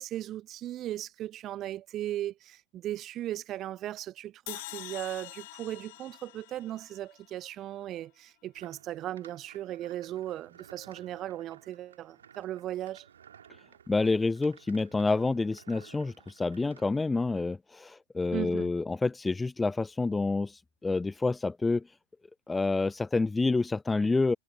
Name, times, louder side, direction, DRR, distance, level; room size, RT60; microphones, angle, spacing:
voice 1, 0.0-13.1 18.3-18.7, right 13 dB, 30° right, 0.9 m, -37 dB
sound 1, 4.5-7.7, left 21 dB, 50° left, 1.5 m, -45 dB
sound 2, 8.5-17.0, right 8 dB, 65° right, 3.5 m, -56 dB
voice 2, 13.9-21.8 22.5-24.3, left 3 dB, 10° left, 0.3 m, -28 dB
figure-of-eight pair, 90°, 0 cm